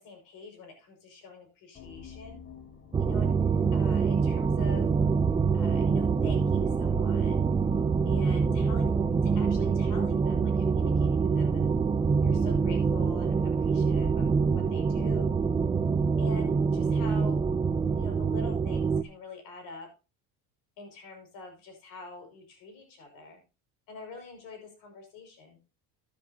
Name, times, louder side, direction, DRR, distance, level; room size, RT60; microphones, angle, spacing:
voice 1, 0.0-2.4 3.0-3.3 3.7-4.9 5.5-7.5 8.1-11.6 12.2-15.3 16.2-17.4 17.9-19.9 20.8-23.4 23.9-25.6, left 3 dB, 65° left, 4 dB, 5.7 m, -46 dB
sound 1, 1.7-13.6, left 5 dB, 25° left, 1.3 m, -48 dB
sound 2, 2.9-19.0, right 5 dB, 15° right, 0.4 m, -25 dB
13.5 x 10.5 x 2.8 m, 0.30 s
cardioid pair, 140°, 36 cm